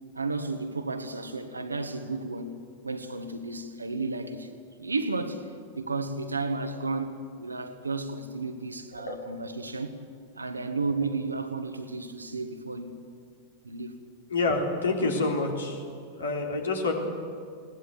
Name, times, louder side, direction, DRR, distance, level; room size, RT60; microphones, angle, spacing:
voice 1, 0.1-2.6 2.8-4.5 4.8-5.5 5.7-10.0 10.3-13.0 13.6-14.0, right 3 dB, 80° right, 1.6 m, -33 dB
voice 2, 14.3-15.8 16.2-16.9, left 3 dB, 70° left, 3.3 m, -27 dB
21.0 x 17.5 x 8.1 m
figure-of-eight pair, 90°, 0 cm